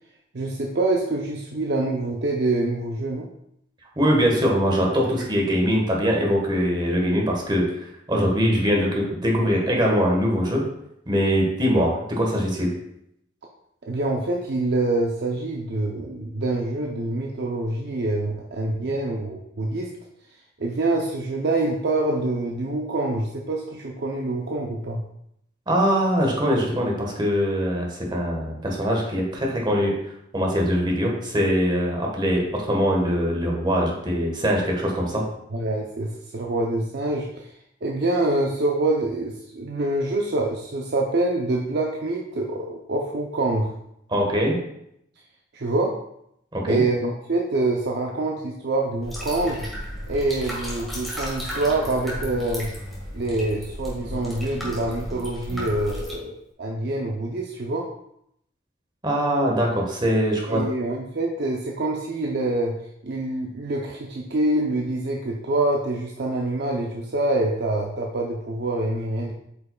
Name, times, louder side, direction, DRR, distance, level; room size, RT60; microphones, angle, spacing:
voice 1, 0.3-3.3 13.8-19.9 20.6-25.0 35.5-37.5 37.8-43.7 45.5-45.9 46.7-49.7 50.1-52.7 53.1-57.9 60.5-62.8 63.0-69.3, right 2 dB, 60° right, 0 dB, 0.6 m, -25 dB
voice 2, 4.0-10.6 11.1-12.7 25.7-29.9 30.3-35.2 44.1-44.5 46.5-46.8 59.0-60.6, equal, 25° right, -1 dB, 1.3 m, -22 dB
sound 1, 49.0-56.1, equal, ahead, 1.7 m, -34 dB
8.0 x 5.5 x 2.3 m, 0.77 s
head